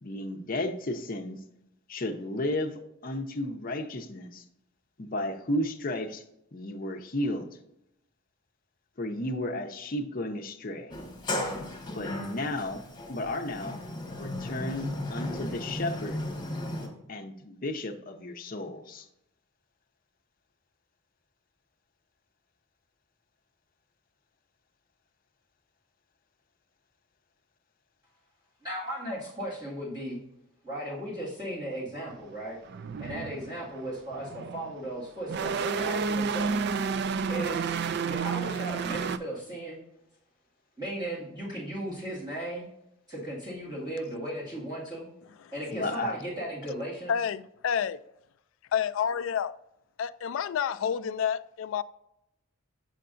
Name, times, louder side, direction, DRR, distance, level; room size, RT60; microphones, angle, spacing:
voice 1, 0.0-1.4 1.9-2.7 3.0-4.4 5.0-6.2 6.5-7.5 9.0-10.9 11.9-12.8 13.1-13.8 14.2-16.2 17.1-19.0 45.7-46.1, left 1 dB, 40° left, 0.7 m, -33 dB
Sliding door, 10.9-16.9, left 1 dB, 20° left, 1.4 m, -35 dB
voice 2, 28.6-30.2 30.6-32.6 33.0-36.7 37.3-37.7 38.0-39.8 40.8-42.7 43.1-45.1 45.5-47.1, right 1 dB, 20° right, 2.0 m, -36 dB
sound 1, 32.1-32.2 32.7-34.8 35.2-39.2, right 5 dB, 50° right, 0.3 m, -30 dB
voice 3, 47.1-48.0 48.7-49.6 50.0-51.8, left 8 dB, 65° left, 0.3 m, -29 dB
6.7 x 6.4 x 2.6 m
head